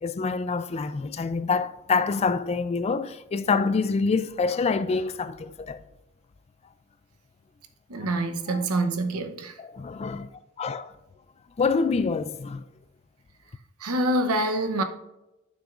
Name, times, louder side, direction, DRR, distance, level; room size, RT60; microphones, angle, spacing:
voice 1, 0.0-5.8 8.5-8.6 9.6-10.3 10.6-10.9 11.6-12.6, left 4 dB, 30° left, 0.3 m, -26 dB
voice 2, 7.9-9.5 13.8-14.8, right 1 dB, 90° right, 0.8 m, -26 dB
11.0 x 6.4 x 2.5 m
head